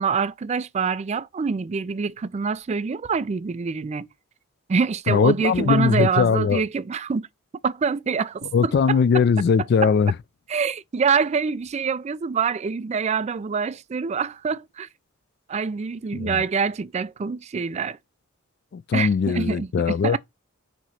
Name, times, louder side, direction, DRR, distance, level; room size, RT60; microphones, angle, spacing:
voice 1, 0.0-4.1 4.7-7.3 7.6-9.0 9.8-9.9 10.5-14.9 15.5-18.0 18.9-20.2, right 5 dB, 30° right, 0.3 m, -25 dB
voice 2, 5.1-6.6 8.5-10.1 16.1-16.4 18.7-20.2, left 6 dB, 50° left, 0.3 m, -20 dB
6.0 x 2.9 x 5.6 m
head